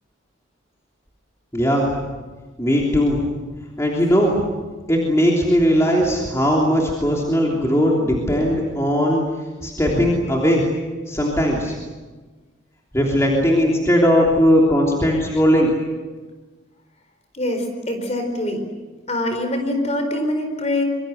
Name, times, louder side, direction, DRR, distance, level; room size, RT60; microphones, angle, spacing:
voice 1, 1.5-2.0 2.6-3.2 3.8-4.3 4.9-9.2 9.6-10.6 11.1-11.7 12.9-15.7, equal, 15° left, -2 dB, 3.2 m, -18 dB
voice 2, 17.3-18.6 19.1-20.8, left 1 dB, 30° left, 6 dB, 4.4 m, -24 dB
25.5 x 23.5 x 8.0 m, 1.3 s
head